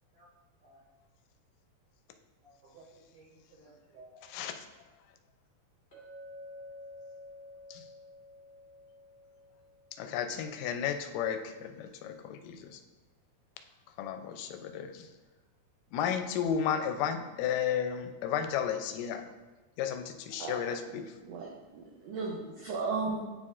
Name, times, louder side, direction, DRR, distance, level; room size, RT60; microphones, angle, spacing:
voice 1, 2.4-4.3, right 2 dB, 65° right, -6 dB, 1.8 m, -57 dB
Chink clink, 5.9-10.1, left 1 dB, 25° left, 1.5 m, -50 dB
voice 2, 10.0-12.8 14.0-15.1 15.9-19.3 19.8-21.0, left 8 dB, 85° left, 6 dB, 2.1 m, -33 dB
voice 3, 20.9-23.2, right 4 dB, 85° right, -2 dB, 1.4 m, -36 dB
9.2 x 4.3 x 2.4 m, 1.2 s
omnidirectional pair, 3.8 m